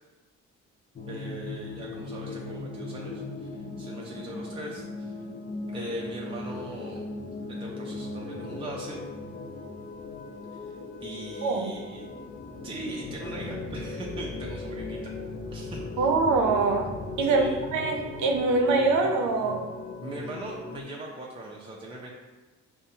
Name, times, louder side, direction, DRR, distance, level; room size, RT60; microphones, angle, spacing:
sound 1, 1.0-20.8, left 3 dB, 25° left, 0.5 m, -38 dB
voice 1, 1.1-3.5 3.8-5.1 5.7-7.1 7.5-9.0 11.0-12.0 12.6-15.1 15.5-15.8 17.2-17.6 20.0-22.1, right 1 dB, 15° right, -3 dB, 0.5 m, -39 dB
voice 2, 11.4-11.7 16.0-16.9 17.2-17.4 17.7-19.6, right 3 dB, 75° right, 2 dB, 0.7 m, -23 dB
5.3 x 2.2 x 2.7 m, 1.2 s
cardioid pair, 90°, 30 cm